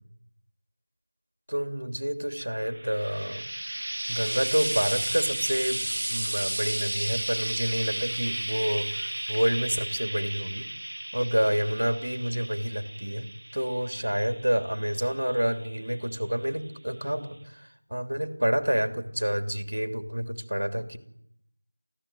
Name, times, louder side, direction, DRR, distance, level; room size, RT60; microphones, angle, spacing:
voice 1, 1.5-3.4 3.8-10.7 11.1-13.3 13.5-21.0, equal, 70° right, 8 dB, 3.0 m, -28 dB
Frying (food), 2.6-16.1 17.0-17.1, right 1 dB, 50° right, 1.0 m, -34 dB
24.0 x 15.5 x 9.2 m, 0.75 s
figure-of-eight pair, 175°, 0 cm